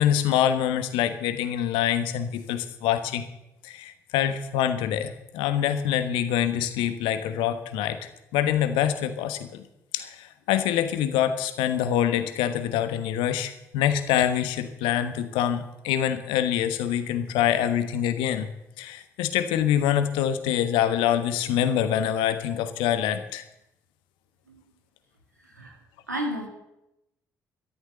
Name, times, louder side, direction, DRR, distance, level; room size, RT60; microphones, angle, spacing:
voice 1, 0.0-3.2 3.6-8.0 8.3-9.6 9.9-18.5 18.8-23.4, left 10 dB, 65° left, 10 dB, 1.3 m, -25 dB
voice 2, 25.4-25.7 26.1-26.5, equal, 90° right, 1 dB, 2.2 m, -32 dB
13.0 x 13.0 x 6.7 m, 0.88 s
figure-of-eight pair, 45°, 9 cm